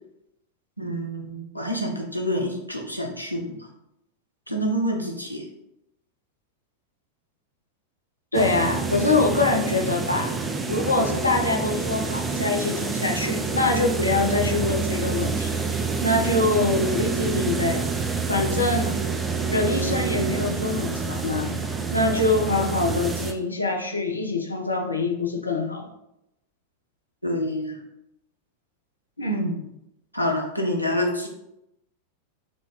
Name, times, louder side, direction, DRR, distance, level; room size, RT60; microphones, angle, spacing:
voice 1, 0.8-3.7 4.5-5.5 27.2-27.8 29.3-29.6 30.1-31.3, equal, 90° right, 1 dB, 0.7 m, -27 dB
voice 2, 8.3-10.3 10.7-15.7 16.0-17.8 18.3-18.9 19.5-21.6 21.9-25.9 29.2-29.4, left 3 dB, 80° left, 2 dB, 0.6 m, -24 dB
sound 1, 8.3-23.3, right 4 dB, 15° right, 0.4 m, -27 dB
4.9 x 2.3 x 3.8 m, 0.84 s
figure-of-eight pair, 90°, 0 cm